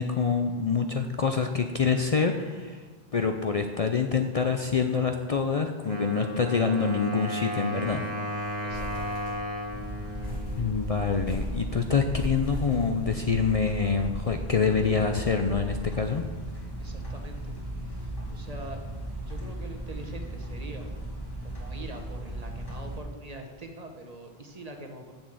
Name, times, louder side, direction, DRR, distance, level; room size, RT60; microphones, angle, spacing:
voice 1, 0.0-2.8 3.1-8.0 10.6-16.2, left 5 dB, 45° left, 5 dB, 0.6 m, -26 dB
Wind instrument woodwind instrument, 5.9-11.5, equal, 75° right, 2.0 m, -35 dB
sound 1, 8.4-9.7 10.2-13.5, left 1 dB, 75° left, 4.0 m, -39 dB
voice 2, 8.6-9.4 16.8-17.6 17.8-18.8 19.2-20.9 21.4-25.2, right 1 dB, 40° right, 4 dB, 1.2 m, -44 dB
sound 2, 9.7-23.0, right 1 dB, 20° left, 2.5 m, -36 dB
7.4 x 7.1 x 7.6 m, 1.4 s
omnidirectional pair, 1.0 m